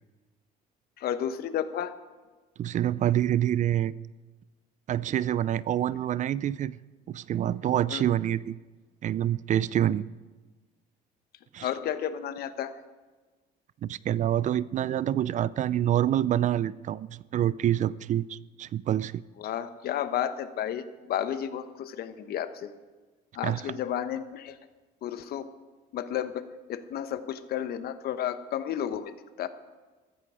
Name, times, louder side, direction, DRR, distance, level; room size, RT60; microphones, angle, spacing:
voice 1, 1.0-1.9 7.9-8.0 11.6-12.7 19.4-22.7 23.3-24.6 25.0-25.5 25.9-29.1 29.4-29.5, left 10 dB, 65° left, 11 dB, 1.0 m, -32 dB
voice 2, 2.6-3.9 4.9-6.8 7.1-8.6 9.0-10.1 11.5-11.7 13.8-19.2 23.4-23.7, right 11 dB, 45° right, 20 dB, 0.4 m, -27 dB
14.5 x 14.5 x 5.0 m, 1.3 s
cardioid pair, 110°, 17 cm